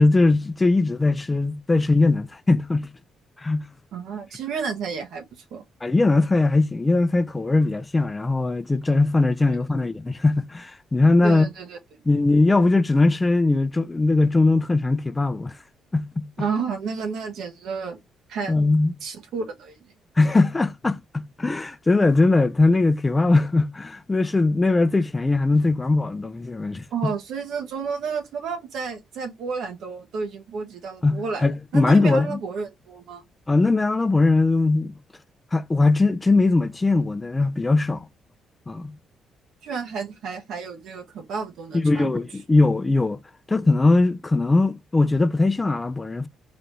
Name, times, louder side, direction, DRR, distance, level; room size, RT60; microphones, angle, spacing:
voice 1, 0.0-3.0 3.4-3.7 5.8-11.5 12.1-15.6 15.9-16.3 18.5-18.9 20.2-27.1 31.0-32.4 33.5-35.0 35.5-38.1 38.7-39.0 41.7-43.2 43.5-46.3, left 3 dB, 20° left, 0.4 m, -20 dB
voice 2, 3.9-5.6 9.5-9.6 11.2-12.0 16.4-18.0 18.3-18.5 19.0-19.9 26.9-31.5 31.7-33.2 39.6-42.2, right 5 dB, 80° right, 1.2 m, -31 dB
4.0 x 2.6 x 3.3 m
cardioid pair, 90°, 0 cm